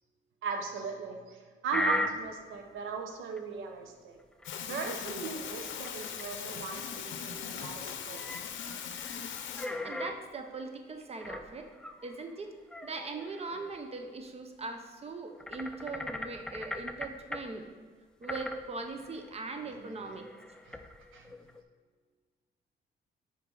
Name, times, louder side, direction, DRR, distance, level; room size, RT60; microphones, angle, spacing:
voice 1, 0.4-4.2 4.7-8.3 19.8-19.9 20.7-20.8 21.1-21.3, right 5 dB, 85° right, 4 dB, 0.8 m, -38 dB
sound 1, 1.7-2.6 3.4-3.5 4.4-5.2 5.6-5.9 6.2-6.3 6.5-7.7 8.1-10.2 11.2-12.2 12.7-13.8 14.1-14.2 15.4-17.4 18.2-21.6, left 1 dB, 5° left, 0.4 m, -39 dB
sound 2, 4.4-9.7, left 8 dB, 75° left, 0.6 m, -40 dB
voice 2, 9.6-11.7 12.0-12.5 12.8-17.7 18.2-20.2, right 3 dB, 30° right, 5 dB, 0.8 m, -40 dB
6.0 x 4.6 x 3.9 m, 1.5 s
cardioid pair, 90°, 20 cm